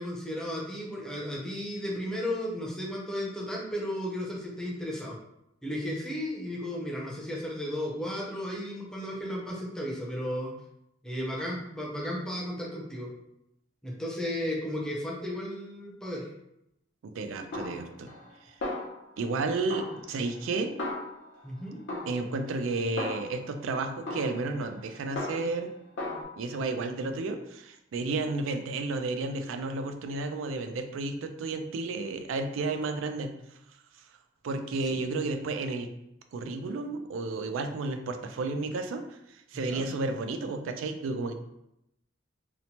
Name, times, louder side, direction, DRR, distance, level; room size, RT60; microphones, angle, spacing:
voice 1, 0.0-5.2 5.6-10.5 11.0-13.1 13.8-16.3 21.4-21.8 34.9-35.0 39.5-39.9, equal, 5° left, -4 dB, 0.6 m, -34 dB
voice 2, 17.0-18.1 19.2-20.7 22.1-25.7 26.4-33.3 34.4-35.9 36.3-39.0 39.3-41.3, right 3 dB, 80° right, 6 dB, 0.3 m, -32 dB
Snare drum, 17.5-18.3 18.6-19.4 19.7-21.5 21.9-23.6 24.1-25.7 26.0-26.2, left 2 dB, 65° left, 0.7 m, -37 dB
2.9 x 2.0 x 2.8 m, 0.82 s
head